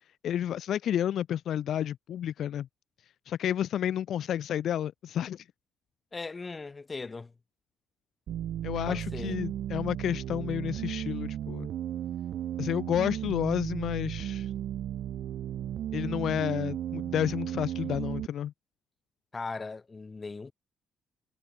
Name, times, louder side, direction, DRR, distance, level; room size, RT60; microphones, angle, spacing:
voice 1, 0.2-2.7 3.3-5.4 8.6-11.7 12.6-14.5 15.9-18.5, left 10 dB, 70° left, 1.3 m, -31 dB
voice 2, 6.1-7.3 8.9-9.4 16.4-16.6 19.3-20.5, left 4 dB, 30° left, 6.1 m, -39 dB
sound 1, 8.3-18.3, right 11 dB, 70° right, 3.0 m, -35 dB
cardioid pair, 90°, 0 cm